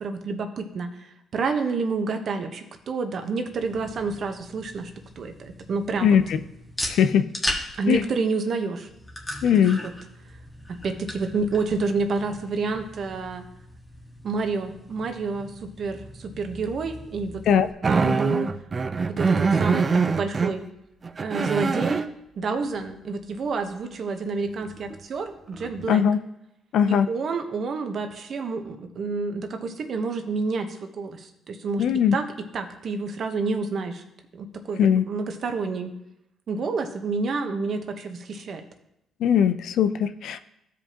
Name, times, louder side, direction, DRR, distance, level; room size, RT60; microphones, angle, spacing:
voice 1, 0.0-0.9 1.3-4.9 5.2-5.3 5.7-6.2 7.8-8.8 9.5-9.9 10.8-13.4 14.2-15.5 15.8-16.0 16.4-17.3 17.9-18.5 19.2-20.6 21.2-22.0 22.4-26.0 26.9-30.7 31.0-31.2 31.5-31.8 32.1-34.0 34.4-35.9 36.5-38.6, right 4 dB, 55° right, 6 dB, 1.0 m, -28 dB
sound 1, 3.4-17.7, left 1 dB, 10° left, 1.5 m, -38 dB
voice 2, 6.9-7.3 7.9-8.0 9.4-9.8 17.5-17.7 25.9-26.2 26.7-27.1 31.8-32.1 34.8-35.0 39.2-40.4, left 8 dB, 75° left, 11 dB, 0.5 m, -19 dB
sound 2, 17.8-20.5 21.0-22.1 24.9-25.0 25.6-25.9, right 4 dB, 35° right, 0.5 m, -23 dB
15.0 x 5.1 x 2.9 m, 0.85 s
cardioid pair, 90°, 0 cm